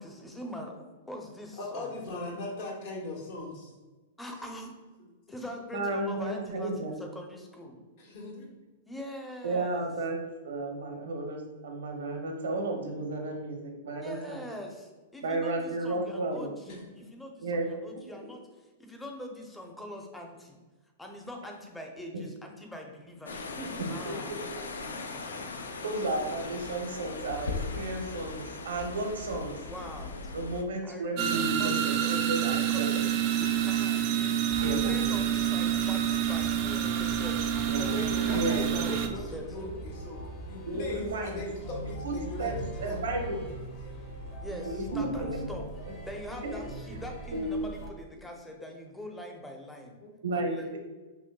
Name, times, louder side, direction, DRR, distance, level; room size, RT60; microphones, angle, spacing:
voice 1, 0.0-1.9 4.2-4.7 5.3-7.8 8.9-9.9 14.0-20.6 21.0-23.5 23.9-24.4 25.1-25.4 29.6-30.3 30.8-32.2 32.5-37.5 38.1-39.4 44.4-45.6 46.1-50.0 50.3-50.8, left 1 dB, 5° left, 2 dB, 0.6 m, -43 dB
voice 2, 1.5-3.7 5.0-5.1 8.0-8.5 16.7-16.8 23.6-23.9 37.7-42.5 42.8-43.0 50.0-50.1, left 2 dB, 55° left, -2 dB, 1.2 m, -39 dB
voice 3, 5.7-7.0 9.4-10.2 10.4-14.4 15.2-16.5 17.4-17.7 18.1-18.2 22.1-22.2 23.8-24.1 25.8-29.6 30.3-33.0 34.6-35.2 37.7-38.0 38.3-38.7 40.6-41.4 42.0-43.4 44.5-45.3 47.3-47.5 50.2-50.8, right 2 dB, 80° right, 2 dB, 0.7 m, -33 dB
sound 1, 23.3-30.6, left 3 dB, 85° left, 0.4 m, -39 dB
sound 2, 31.2-39.1, right 10 dB, 45° right, 0.3 m, -28 dB
sound 3, 34.5-47.9, right 1 dB, 35° left, 1.0 m, -41 dB
5.6 x 2.1 x 2.3 m, 1.2 s
hypercardioid pair, 120°, 0 cm